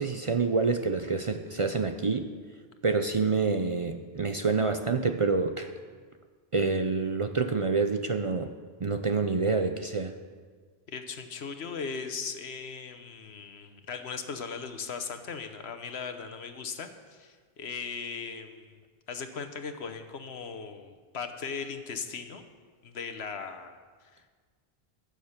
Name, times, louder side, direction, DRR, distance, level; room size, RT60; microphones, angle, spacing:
voice 1, 0.0-2.3 2.8-5.7 6.5-8.5 8.8-10.2, right 4 dB, 40° right, 7 dB, 0.5 m, -27 dB
voice 2, 10.9-18.8 19.1-22.4 22.8-24.3, left 5 dB, 85° left, 8 dB, 1.2 m, -38 dB
15.0 x 6.7 x 6.6 m, 1.6 s
omnidirectional pair, 1.1 m